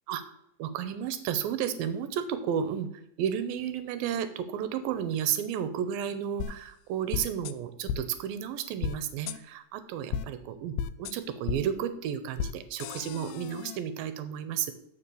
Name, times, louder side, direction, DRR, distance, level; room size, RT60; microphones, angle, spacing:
voice 1, 0.6-2.9 3.2-10.7 11.0-14.7, right 9 dB, 80° right, 11 dB, 2.3 m, -32 dB
sound 1, 6.4-6.5 7.1-7.5 7.9-8.0 8.8-9.0 9.3-9.4 10.1-10.2 10.8-11.1 11.5-11.6 12.4-12.5 12.8-13.8, left 8 dB, 80° left, 2.1 m, -33 dB
7.0 x 7.0 x 6.9 m, 0.76 s
omnidirectional pair, 4.6 m